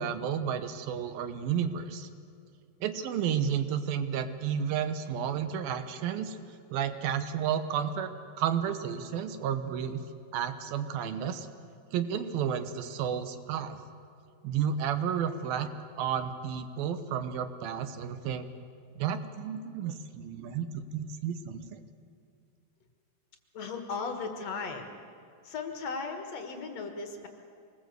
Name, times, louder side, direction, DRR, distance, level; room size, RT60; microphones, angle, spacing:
voice 1, 0.0-2.1 2.8-6.4 6.7-8.1 8.4-10.0 10.3-11.5 11.9-13.8 14.4-15.7 16.0-18.5 19.0-21.6, right 8 dB, 80° right, 10 dB, 2.9 m, -32 dB
voice 2, 23.5-25.0 25.4-27.3, left 4 dB, 55° left, 5 dB, 2.3 m, -36 dB
25.0 x 20.0 x 8.0 m, 2.3 s
omnidirectional pair, 4.2 m